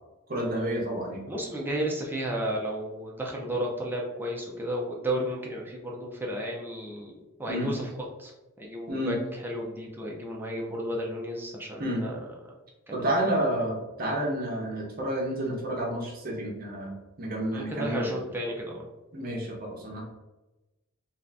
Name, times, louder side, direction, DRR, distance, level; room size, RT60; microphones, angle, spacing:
voice 1, 0.3-1.2 7.5-7.7 8.9-9.1 11.8-12.0 12.9-16.9 17.2-18.1 19.1-20.0, right 1 dB, 45° right, -1 dB, 0.8 m, -30 dB
voice 2, 1.3-7.8 8.2-8.3 8.6-12.2 12.9-13.1 17.5-18.9, equal, 10° right, -2 dB, 0.5 m, -33 dB
2.6 x 2.5 x 3.3 m, 1.0 s
head